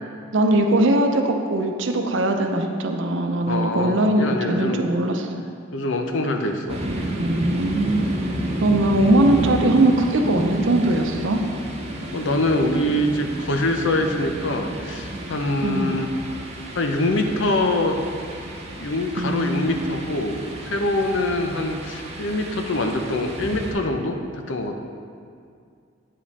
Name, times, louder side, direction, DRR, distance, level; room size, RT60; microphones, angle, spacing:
voice 1, 0.3-5.3 7.2-8.0 8.6-11.4 15.6-16.0 19.2-20.0, right 1 dB, 70° right, 4 dB, 0.7 m, -20 dB
voice 2, 3.5-4.9 5.7-6.8 12.1-16.1 16.7-18.0 18.8-24.8, left 1 dB, 75° left, 4 dB, 0.7 m, -24 dB
sound 1, 6.7-23.7, right 1 dB, 35° right, 0.9 m, -31 dB
8.8 x 5.1 x 4.2 m, 2.2 s
head